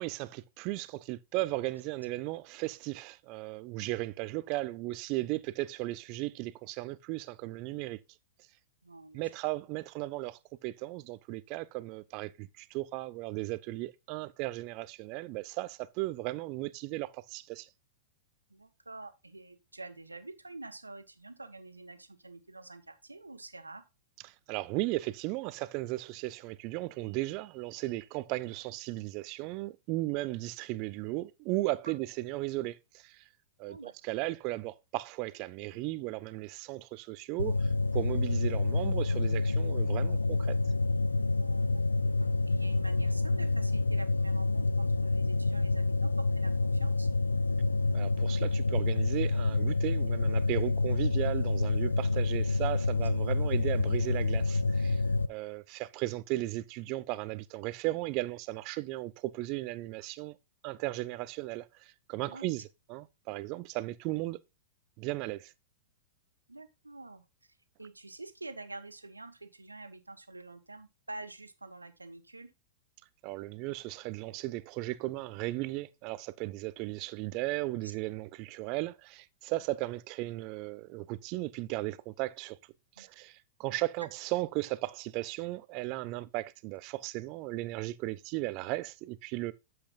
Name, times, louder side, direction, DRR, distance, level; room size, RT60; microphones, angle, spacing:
voice 1, 0.0-8.0 9.1-17.7 24.2-33.2 33.6-40.6 47.9-55.0 55.3-60.4 60.6-62.6 62.9-64.4 65.0-65.5 73.2-82.6 83.0-89.5, right 19 dB, 40° right, 0.8 m, -36 dB
voice 2, 8.8-9.2 18.5-23.8 33.7-33.9 41.4-42.0 42.4-47.1 58.7-58.8 62.3-62.5 66.5-67.2 67.8-72.5 77.8-77.9 83.0-83.1, right 2 dB, 85° right, 1.6 m, -47 dB
sound 1, 37.4-55.3, left 3 dB, 80° left, 0.6 m, -28 dB
11.5 x 7.9 x 2.6 m
figure-of-eight pair, 100°, 0 cm